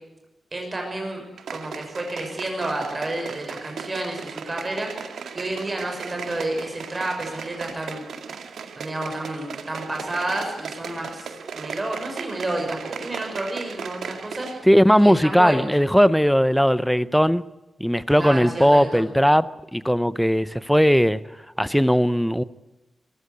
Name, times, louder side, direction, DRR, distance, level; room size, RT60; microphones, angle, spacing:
voice 1, 0.5-1.2 1.5-4.9 5.3-8.0 8.7-14.5 15.0-15.7 18.2-19.1, right 2 dB, 25° right, 6.1 m, -30 dB
sound 1, 1.4-14.7 14.9-15.0, right 6 dB, 90° right, 2.1 m, -37 dB
voice 2, 14.7-17.4 17.8-21.2 21.6-22.4, equal, ahead, 0.7 m, -18 dB
22.5 x 15.5 x 9.7 m
wide cardioid pair, 125°, 0 cm